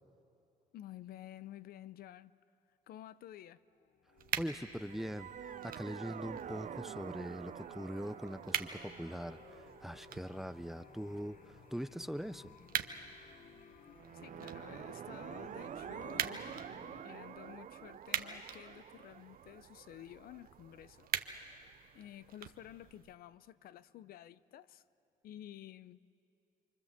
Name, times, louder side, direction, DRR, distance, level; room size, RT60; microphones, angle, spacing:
voice 1, 0.7-2.4 2.9-3.6 14.1-16.5 17.0-21.1 21.9-24.8 25.2-26.0, left 12 dB, 85° left, 0.6 m, -52 dB
sound 1, 3.7-17.0, left 8 dB, 65° left, 0.9 m, -60 dB
sound 2, 4.2-23.1, right 9 dB, 75° right, 1.1 m, -45 dB
voice 2, 4.4-12.5, equal, ahead, 0.6 m, -42 dB
sound 3, 4.8-12.0 13.9-21.7, right 9 dB, 55° right, 0.7 m, -48 dB
28.5 x 24.0 x 7.4 m
cardioid pair, 90°, 15 cm